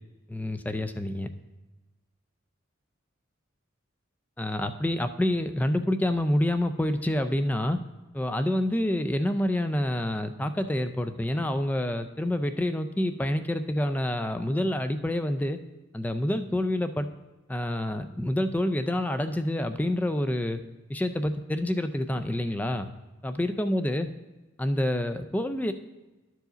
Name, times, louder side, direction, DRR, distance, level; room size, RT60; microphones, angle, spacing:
voice 1, 0.3-1.3 4.4-7.8 8.1-15.6 15.9-17.1 17.5-20.6 20.9-22.9 23.2-24.1 24.6-25.7, left 1 dB, 10° left, 9 dB, 0.3 m, -27 dB
11.5 x 4.8 x 3.9 m, 1.2 s
head